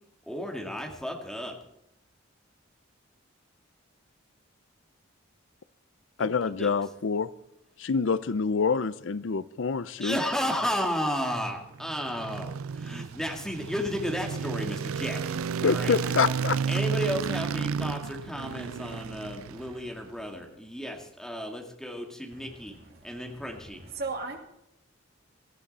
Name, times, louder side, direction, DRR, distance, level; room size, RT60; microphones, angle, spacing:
voice 1, 0.3-1.6 6.2-6.3 6.6-6.7 10.0-15.9 16.7-22.8 23.0-23.8, equal, ahead, 2.1 m, -33 dB
voice 2, 6.2-7.3 7.8-10.2 15.6-16.6, left 5 dB, 65° left, 0.5 m, -26 dB
sound 1, 11.6-20.0, right 6 dB, 85° right, 0.4 m, -32 dB
voice 3, 22.3-24.4, right 3 dB, 50° right, 2.4 m, -39 dB
17.5 x 14.0 x 4.2 m
head